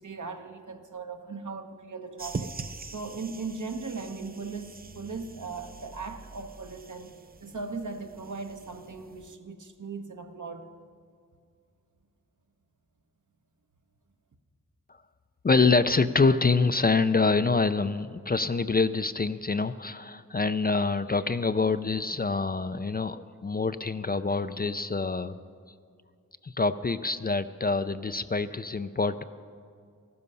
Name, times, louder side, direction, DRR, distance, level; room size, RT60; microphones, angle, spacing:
voice 1, 0.0-2.6 2.9-10.7, right 4 dB, 65° right, 1.1 m, -38 dB
sound 1, 2.2-9.4, right 4 dB, 30° right, 0.5 m, -43 dB
voice 2, 15.4-25.3 26.4-29.2, left 4 dB, 30° left, 0.4 m, -26 dB
14.0 x 12.5 x 5.5 m
wide cardioid pair, 50°, 33 cm